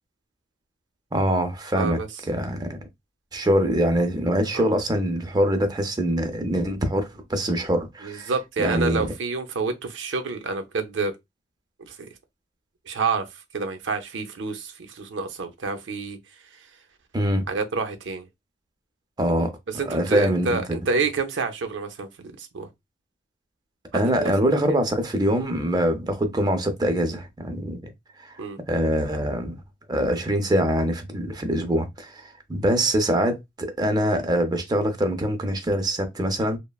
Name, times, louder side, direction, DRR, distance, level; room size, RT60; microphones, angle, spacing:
voice 1, 1.1-2.0 2.3-2.7 3.3-8.3 8.6-9.1 17.1-17.4 19.2-20.8 23.9-27.8 28.2-28.3 28.7-29.6 29.9-36.6, equal, 20° right, 0.5 m, -24 dB
voice 2, 1.7-2.1 4.5-4.7 8.0-11.2 11.8-12.1 12.9-13.3 13.5-16.2 16.5-16.7 17.5-18.3 19.7-22.7 23.9-24.8 28.4-28.6, right 4 dB, 75° right, 0.6 m, -28 dB
3.1 x 2.1 x 2.2 m
head